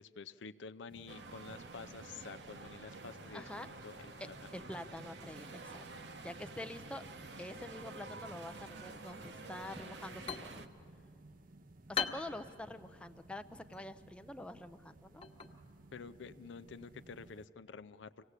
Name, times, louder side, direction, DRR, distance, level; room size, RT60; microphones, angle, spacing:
voice 1, 0.0-4.5 15.9-18.2, left 5 dB, 75° left, 14 dB, 0.5 m, -49 dB
sound 1, 0.9-17.5, right 2 dB, 50° right, 0.7 m, -59 dB
sound 2, 1.1-10.7, right 3 dB, 65° right, 1.0 m, -50 dB
voice 2, 3.3-3.7 4.2-5.9 6.2-7.0 7.4-10.6 11.9-15.2, left 1 dB, 5° left, 8 dB, 0.5 m, -46 dB
sound 3, 9.9-17.4, left 6 dB, 30° left, 1.1 m, -45 dB
25.5 x 17.5 x 8.1 m, 2.4 s
head